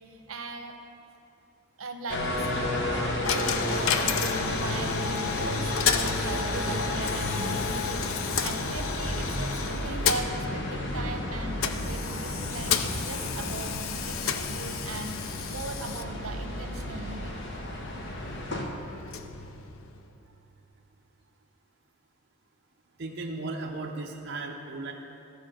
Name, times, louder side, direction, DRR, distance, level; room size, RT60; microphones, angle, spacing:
voice 1, 0.1-0.8 1.8-17.5 19.4-19.6, right 2 dB, 80° right, 5 dB, 0.8 m, -39 dB
sound 1, 2.1-18.6, left 1 dB, 55° left, 1.0 m, -32 dB
Coin (dropping), 3.2-20.2, left 7 dB, 75° left, 0.5 m, -33 dB
voice 2, 23.0-24.9, right 3 dB, 50° right, -1 dB, 0.6 m, -35 dB
14.0 x 4.8 x 6.4 m, 3.0 s
head